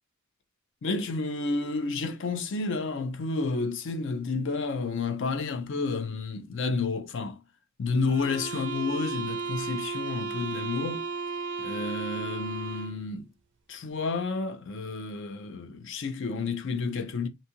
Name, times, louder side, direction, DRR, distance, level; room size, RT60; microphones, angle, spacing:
voice 1, 0.8-7.4 7.8-11.0 11.6-13.3 13.7-17.3, left 4 dB, 60° left, 0.5 m, -30 dB
sound 1, 8.1-13.0, right 4 dB, 60° right, 0.4 m, -34 dB
2.7 x 2.3 x 2.8 m
head